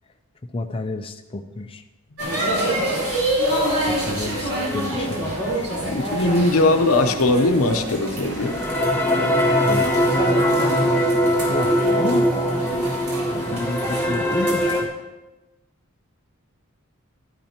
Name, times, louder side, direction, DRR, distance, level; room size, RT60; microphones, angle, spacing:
voice 1, 0.5-1.8 3.8-6.3 9.6-10.0 11.5-12.3 13.3-14.9, left 2 dB, 25° left, 5 dB, 0.5 m, -31 dB
sound 1, 2.2-14.8, right 1 dB, 75° right, 4.5 m, -27 dB
voice 2, 5.8-8.6, left 2 dB, 75° left, 6 dB, 0.9 m, -20 dB
sound 2, 8.3-14.8, equal, 10° left, 1.0 m, -21 dB
13.0 x 12.0 x 2.9 m, 1.1 s
head